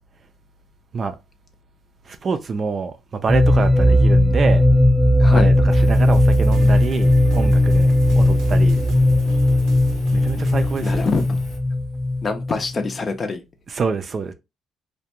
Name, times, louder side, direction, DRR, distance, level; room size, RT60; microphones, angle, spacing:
voice 1, 2.1-4.6 5.3-8.8 10.1-11.0 13.7-14.3, right 5 dB, 45° right, 0.4 m, -26 dB
sound 1, 3.3-12.9, left 1 dB, ahead, 0.7 m, -17 dB
voice 2, 5.2-5.5 10.8-11.4 12.2-13.4, left 4 dB, 40° left, 0.5 m, -24 dB
Engine, 5.7-11.6, right 1 dB, 75° left, 0.9 m, -41 dB
sound 2, 5.9-11.3, right 2 dB, 90° right, 0.6 m, -35 dB
2.4 x 2.2 x 2.8 m
cardioid pair, 90°, 0 cm